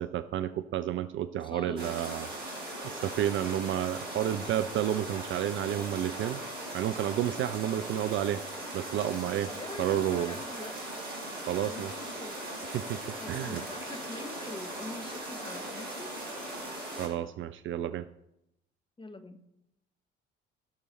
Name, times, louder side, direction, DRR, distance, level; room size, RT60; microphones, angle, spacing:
voice 1, 0.0-2.3 2.8-6.4 6.7-8.4 8.7-9.5 9.8-10.4 11.4-11.9 12.7-13.6 17.0-18.1, right 11 dB, 40° right, 13 dB, 0.5 m, -31 dB
voice 2, 1.4-2.3 9.5-10.8 11.5-12.4 13.2-16.1 19.0-19.4, left 2 dB, 15° left, 8 dB, 1.2 m, -44 dB
sound 1, 1.8-17.1, right 1 dB, 65° right, 3.9 m, -39 dB
16.0 x 6.9 x 4.2 m, 0.83 s
figure-of-eight pair, 55°, 31 cm